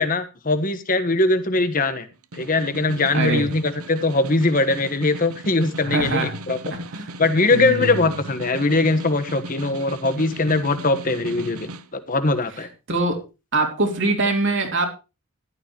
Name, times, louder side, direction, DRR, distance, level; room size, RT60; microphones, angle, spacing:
voice 1, 0.0-2.1 2.3-6.6 7.2-12.7, left 2 dB, 40° left, 10 dB, 1.3 m, -21 dB
Snare drum, 2.1-11.9, right 2 dB, 80° right, 1.0 m, -37 dB
voice 2, 3.1-3.5 5.8-6.4 6.7-7.1 7.5-8.0 12.9-13.2 13.5-14.9, right 2 dB, 55° right, 3 dB, 3.4 m, -23 dB
14.5 x 12.0 x 3.0 m, 0.29 s
head